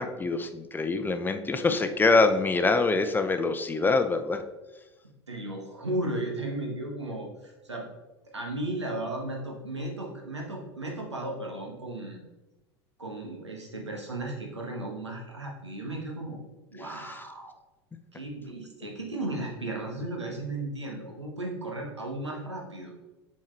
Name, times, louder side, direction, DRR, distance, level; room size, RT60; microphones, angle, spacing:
voice 1, 0.0-4.4 17.0-17.2, left 3 dB, 15° left, 8 dB, 0.6 m, -25 dB
voice 2, 5.3-7.9 8.3-12.2 13.0-16.4 16.7-17.5 18.1-22.9, right 1 dB, 90° right, -1 dB, 1.3 m, -35 dB
7.2 x 4.3 x 3.2 m, 1.1 s
figure-of-eight pair, 80°, 14 cm